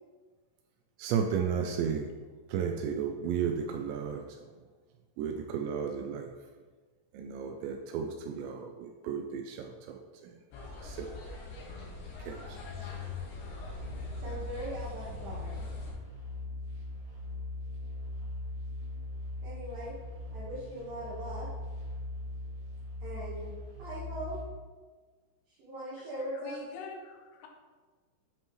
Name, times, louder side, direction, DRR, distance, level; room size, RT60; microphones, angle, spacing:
voice 1, 1.0-2.1 2.5-4.5 5.2-6.3 7.1-10.4 10.8-11.1 12.2-12.9, right 7 dB, 85° right, 4 dB, 2.5 m, -34 dB
sound 1, 10.5-15.9, left 3 dB, 65° left, 3.3 m, -43 dB
sound 2, 13.7-24.4, left 2 dB, 45° right, 2.5 m, -40 dB
voice 2, 14.2-15.6 19.4-19.9 20.3-21.5 23.0-23.5 23.8-24.4 25.6-26.6, right 1 dB, 60° right, -8 dB, 2.6 m, -40 dB
voice 3, 26.0-27.5, left 3 dB, 85° left, 1 dB, 3.6 m, -46 dB
10.5 x 5.5 x 3.1 m, 1.4 s
omnidirectional pair, 5.6 m